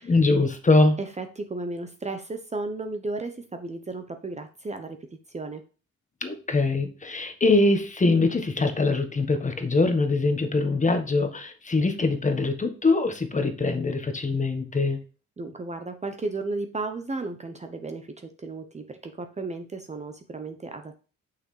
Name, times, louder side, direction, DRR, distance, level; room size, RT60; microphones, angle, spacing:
voice 1, 0.0-1.0 6.2-15.0, left 3 dB, 25° left, 7 dB, 1.2 m, -23 dB
voice 2, 1.0-5.0 5.3-5.6 15.4-21.0, right 3 dB, 25° right, 6 dB, 0.8 m, -34 dB
6.3 x 5.8 x 3.2 m, 0.35 s
cardioid pair, 90°, 30 cm